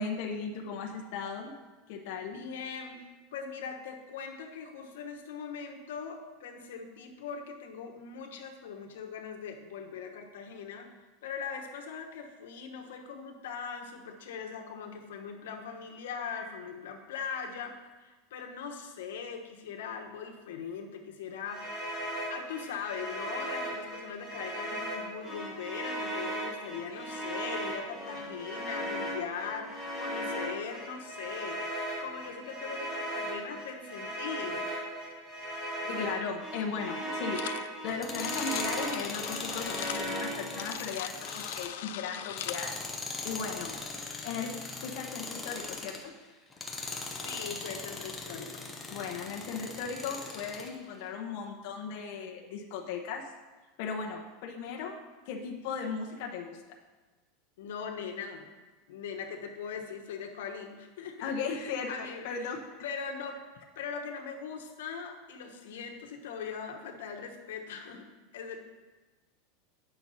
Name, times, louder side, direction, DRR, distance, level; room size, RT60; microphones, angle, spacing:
voice 1, 0.0-1.5 1.9-2.4 16.4-16.5 35.8-42.7 43.2-43.8 44.2-46.1 48.9-53.2 53.8-55.0 55.3-56.6 61.2-62.6, left 5 dB, 45° left, 0 dB, 0.8 m, -37 dB
voice 2, 2.3-3.1 3.3-21.9 22.3-34.6 47.1-48.8 57.6-58.5 58.9-62.5 62.8-63.4 63.8-68.6, left 6 dB, 90° left, 2 dB, 1.1 m, -40 dB
sound 1, 21.5-40.7, right 1 dB, 20° right, 1.7 m, -37 dB
sound 2, 37.3-37.7 38.0-42.7, left 12 dB, 65° left, 0.3 m, -40 dB
Tools, 37.9-46.1 46.5-50.7, left 3 dB, 10° left, 0.6 m, -40 dB
9.0 x 6.0 x 4.1 m, 1.2 s
supercardioid pair, 180°, 0 cm